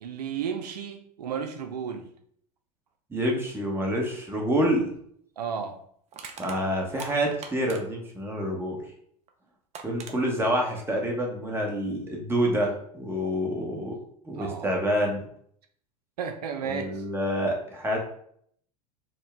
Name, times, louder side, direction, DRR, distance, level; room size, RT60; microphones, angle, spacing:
voice 1, 0.0-2.1 5.4-5.8 14.3-14.7 16.2-17.0, right 6 dB, 80° right, 6 dB, 0.5 m, -33 dB
voice 2, 3.1-4.9 6.4-8.8 9.8-13.9 14.2-15.2 16.7-18.0, equal, 10° right, 0 dB, 1.1 m, -27 dB
Crushing, 6.1-8.1 9.3-9.4 9.7-10.2, right 5 dB, 35° right, 0.6 m, -42 dB
4.3 x 2.2 x 3.4 m, 0.66 s
hypercardioid pair, 90°, 20 cm